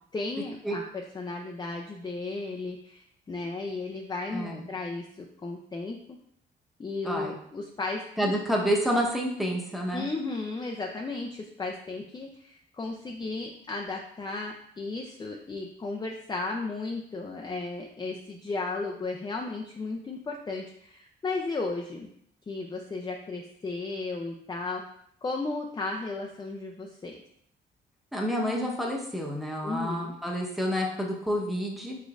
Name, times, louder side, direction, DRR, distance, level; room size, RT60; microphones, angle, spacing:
voice 1, 0.1-0.8 1.1-6.0 6.8-8.3 9.9-22.1 22.5-24.8 25.2-27.1 29.6-30.1, left 3 dB, 20° left, 0 dB, 0.4 m, -34 dB
voice 2, 4.3-4.6 7.0-7.3 8.2-10.1 28.1-32.0, equal, ahead, -2 dB, 0.9 m, -29 dB
5.1 x 3.6 x 2.5 m, 0.70 s
cardioid pair, 90°, 20 cm